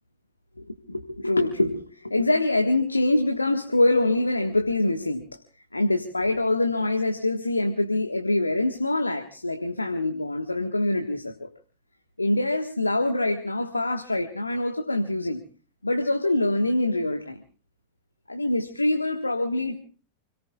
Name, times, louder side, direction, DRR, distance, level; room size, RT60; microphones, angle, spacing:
voice 1, 0.6-5.4 5.7-11.5 12.2-15.4 15.8-17.4 18.3-19.7, left 2 dB, 80° left, 5 dB, 1.5 m, -25 dB
29.5 x 18.5 x 2.4 m, 0.37 s
figure-of-eight pair, 90°, 0 cm